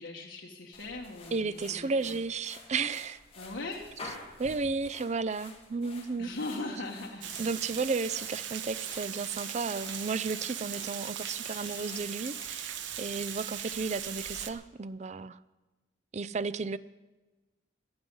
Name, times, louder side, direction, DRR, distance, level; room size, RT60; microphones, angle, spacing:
voice 1, 0.0-2.1 3.4-3.9 6.2-7.8 11.6-12.1, left 2 dB, 75° left, 1.4 m, -40 dB
sound 1, 0.7-14.5, left 3 dB, 30° left, 2.1 m, -51 dB
voice 2, 1.3-3.2 4.4-6.3 7.4-15.4 16.1-16.8, right 4 dB, 40° right, 0.5 m, -33 dB
Water, 7.2-14.5, right 9 dB, 90° right, 0.9 m, -39 dB
17.5 x 11.0 x 5.5 m
head